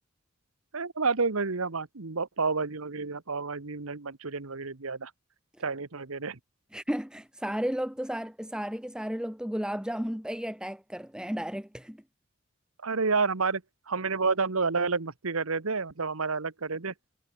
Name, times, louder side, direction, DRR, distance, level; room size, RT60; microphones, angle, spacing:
voice 1, 0.7-5.1 5.6-6.4 12.8-13.6 13.9-16.9, right 4 dB, 75° right, 1.3 m, -29 dB
voice 2, 6.7-12.0, equal, 5° right, 1.4 m, -33 dB
head